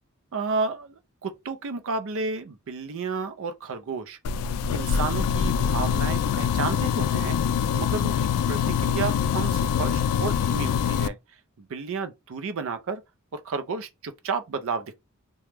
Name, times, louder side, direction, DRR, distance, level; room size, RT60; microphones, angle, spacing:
voice 1, 0.3-4.2 4.7-7.4 7.7-11.2 11.6-13.0 13.3-14.9, right 4 dB, 65° right, 0.5 m, -32 dB
sound 1, 4.2-11.1, left 7 dB, 85° left, 0.3 m, -24 dB
3.0 x 2.2 x 3.3 m
head